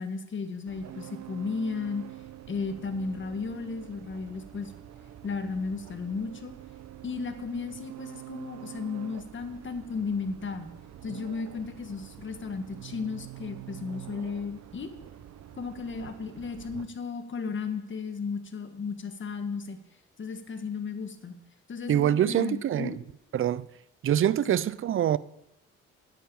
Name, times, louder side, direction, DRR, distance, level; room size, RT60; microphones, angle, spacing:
voice 1, 0.0-2.0 2.5-4.7 5.2-6.5 7.0-10.7 11.0-14.9 15.6-19.8 20.2-21.3 21.7-23.0, left 4 dB, 40° left, 1.6 m, -34 dB
sound 1, 0.7-16.8, right 12 dB, 60° right, 0.9 m, -46 dB
voice 2, 21.9-23.0 23.3-23.7 24.0-25.2, right 11 dB, 45° right, 0.5 m, -25 dB
9.3 x 9.1 x 7.1 m
cardioid pair, 90°, 30 cm